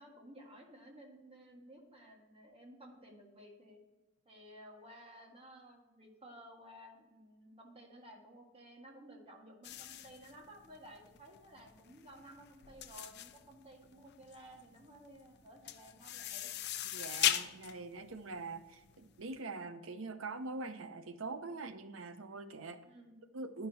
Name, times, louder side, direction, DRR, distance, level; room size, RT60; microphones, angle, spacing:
voice 1, 0.0-3.8 4.3-16.5 22.8-23.2, right 1 dB, 30° right, 0 dB, 1.7 m, -55 dB
sound 1, 9.6-19.3, left 11 dB, 55° left, 0.5 m, -39 dB
voice 2, 16.9-22.8 23.3-23.7, right 3 dB, 90° right, 9 dB, 0.7 m, -43 dB
9.9 x 5.9 x 4.2 m, 1.1 s
head